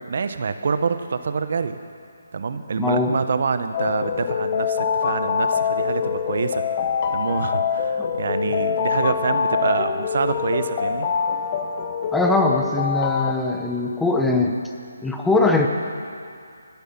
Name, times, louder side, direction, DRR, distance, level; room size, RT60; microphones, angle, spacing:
voice 1, 0.1-1.8 2.3-6.6 7.1-11.1, right 5 dB, 55° right, 10 dB, 0.8 m, -26 dB
voice 2, 2.8-3.1 8.0-8.1 12.1-14.6 15.0-15.7, left 2 dB, 5° left, 2 dB, 0.8 m, -21 dB
sound 1, 3.7-13.3, left 7 dB, 35° left, 0.9 m, -24 dB
15.5 x 10.5 x 5.8 m, 2.3 s
figure-of-eight pair, 155°, 0 cm